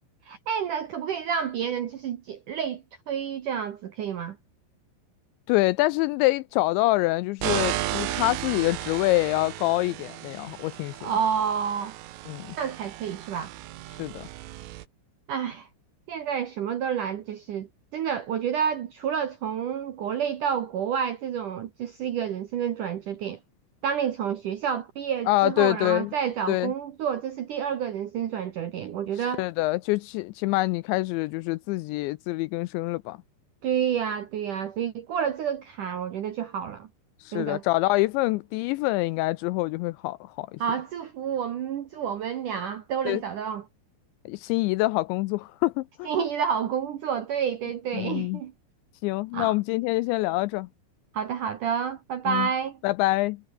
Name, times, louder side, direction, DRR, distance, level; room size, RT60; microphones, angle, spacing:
voice 1, 0.3-4.4 11.0-11.9 12.6-13.5 15.3-15.7 16.1-23.4 23.8-29.4 33.6-36.9 37.3-37.6 40.6-43.7 46.0-48.5 49.3-49.5 51.1-52.8, right 8 dB, 70° right, 2.0 m, -29 dB
voice 2, 5.5-11.1 12.3-12.6 14.0-14.3 25.3-26.1 26.5-26.7 29.2-33.2 37.2-40.6 43.1-43.2 44.3-46.3 47.9-48.4 49.0-50.7 52.3-52.5 52.8-53.4, left 20 dB, 85° left, 2.6 m, -26 dB
sound 1, 7.4-14.9, right 15 dB, 90° right, 4.0 m, -34 dB
omnidirectional pair, 5.6 m